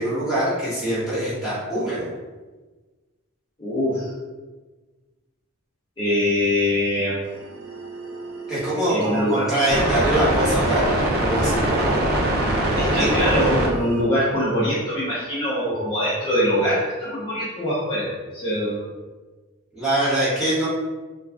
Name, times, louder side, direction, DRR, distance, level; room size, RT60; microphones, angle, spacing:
voice 1, 0.0-2.1 8.5-12.1 13.0-13.1 19.7-20.7, right 1 dB, 5° right, -12 dB, 1.0 m, -23 dB
voice 2, 3.6-4.1 6.0-7.2 8.9-9.5 12.7-18.8, left 1 dB, 20° left, -11 dB, 0.6 m, -23 dB
sound 1, 7.2-14.0, right 1 dB, 45° right, 0.4 m, -24 dB
2.4 x 2.3 x 3.3 m, 1.3 s
head